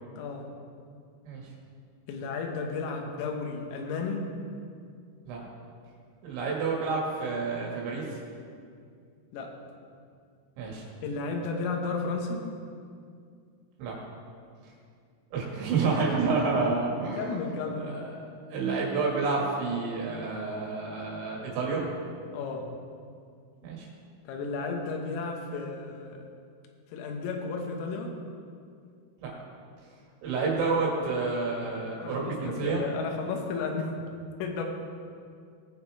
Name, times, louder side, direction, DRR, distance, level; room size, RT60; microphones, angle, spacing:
voice 1, 0.2-0.5 2.1-4.4 9.3-9.6 11.0-12.5 17.2-18.0 22.3-22.7 24.3-26.2 26.9-28.2 31.9-33.9 34.4-34.6, left 4 dB, 85° left, 2 dB, 3.9 m, -33 dB
voice 2, 6.2-8.2 10.6-10.8 13.8-14.0 15.3-18.2 18.5-21.9 23.6-23.9 29.2-29.3 30.2-32.8, right 4 dB, 70° right, -3 dB, 4.2 m, -29 dB
19.5 x 7.3 x 4.8 m, 2.3 s
omnidirectional pair, 5.9 m